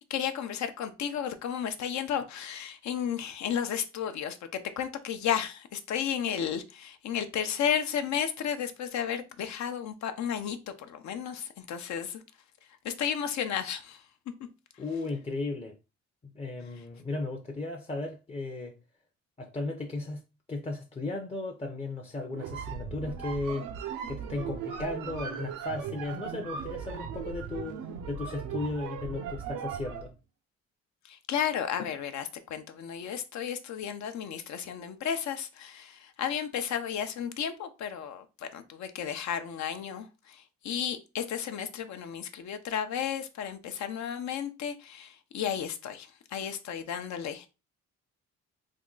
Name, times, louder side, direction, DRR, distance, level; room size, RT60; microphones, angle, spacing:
voice 1, 0.1-12.2 12.8-14.0 31.0-47.5, left 8 dB, 70° left, 0.6 m, -33 dB
voice 2, 14.8-15.7 16.3-18.7 19.4-20.2 20.5-23.7 24.1-30.1, left 2 dB, 20° left, 0.6 m, -35 dB
sound 1, 22.3-30.1, right 7 dB, 90° right, 0.6 m, -38 dB
3.6 x 2.2 x 3.8 m
cardioid pair, 90°, 30 cm